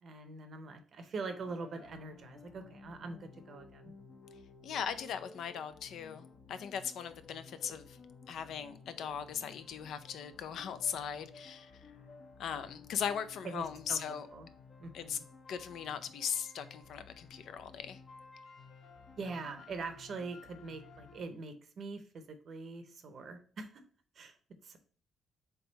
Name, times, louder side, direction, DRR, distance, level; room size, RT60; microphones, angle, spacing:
voice 1, 0.0-3.9 13.4-14.5 14.8-15.2 19.2-23.8 24.2-24.4 24.6-24.8, right 3 dB, 55° right, 0.7 m, -43 dB
sound 1, 1.3-21.2, left 4 dB, 50° left, 0.8 m, -55 dB
voice 2, 4.6-8.0 8.3-11.8 12.4-14.3 14.9-15.2 15.5-18.0, left 8 dB, 75° left, 0.4 m, -39 dB
3.5 x 3.4 x 4.0 m
cardioid pair, 90°, 0 cm